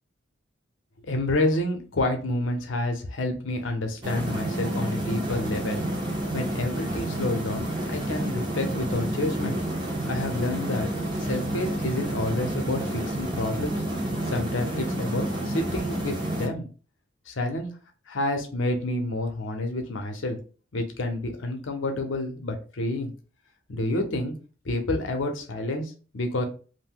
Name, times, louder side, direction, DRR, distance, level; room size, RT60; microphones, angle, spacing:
voice 1, 1.0-5.8 6.3-9.6 10.1-10.9 11.2-13.8 14.3-16.7 17.3-17.7 18.1-20.4 20.7-23.1 23.7-24.3 24.6-26.4, left 1 dB, 75° left, 4 dB, 0.7 m, -29 dB
sound 1, 4.0-16.5, right 1 dB, 25° right, 0.7 m, -30 dB
2.6 x 2.1 x 3.6 m, 0.38 s
head